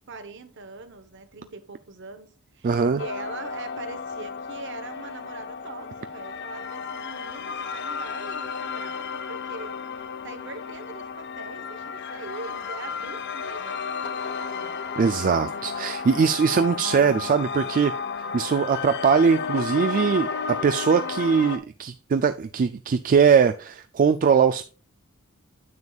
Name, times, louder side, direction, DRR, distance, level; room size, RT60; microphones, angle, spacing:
voice 1, 0.1-14.8, right 4 dB, 60° right, 1.0 m, -42 dB
voice 2, 2.6-3.0 15.0-17.9 18.3-24.7, right 6 dB, 40° right, 0.3 m, -21 dB
sound 1, 3.0-21.6, left 5 dB, 55° left, 0.6 m, -33 dB
9.6 x 7.1 x 2.3 m
head